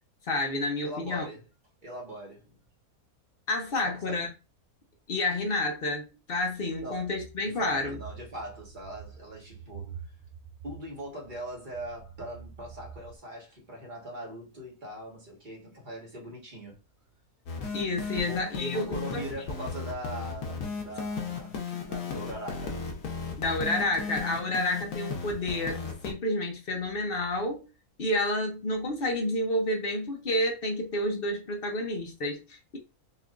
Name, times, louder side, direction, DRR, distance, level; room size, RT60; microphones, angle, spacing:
voice 1, 0.2-1.3 3.5-4.3 5.1-8.0 17.7-19.2 23.4-27.7 28.0-32.8, left 1 dB, 45° left, 0.9 m, -30 dB
voice 2, 0.8-1.4 1.8-2.6 3.8-4.2 6.8-7.1 7.4-10.0 10.6-16.8 18.1-22.8, right 1 dB, 35° right, 1.6 m, -41 dB
sound 1, 6.5-13.2, right 7 dB, 75° right, 1.0 m, -47 dB
sound 2, 17.5-26.1, left 5 dB, 80° left, 1.4 m, -35 dB
4.4 x 3.0 x 2.5 m
omnidirectional pair, 1.5 m